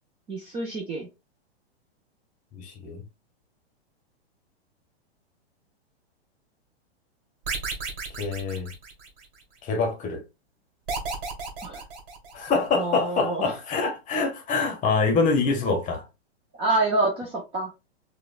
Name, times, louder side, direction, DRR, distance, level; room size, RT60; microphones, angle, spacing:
voice 1, 0.3-1.1 11.6-11.8 12.8-13.5 16.6-17.7, right 2 dB, 15° right, 0.5 m, -27 dB
voice 2, 2.5-3.0 8.2-8.7 9.6-10.2 12.3-16.0, left 4 dB, 25° left, 0.9 m, -25 dB
sound 1, 7.4-9.4 10.9-12.7, right 4 dB, 60° right, 1.3 m, -33 dB
5.0 x 2.2 x 2.4 m
hypercardioid pair, 125°, 33 cm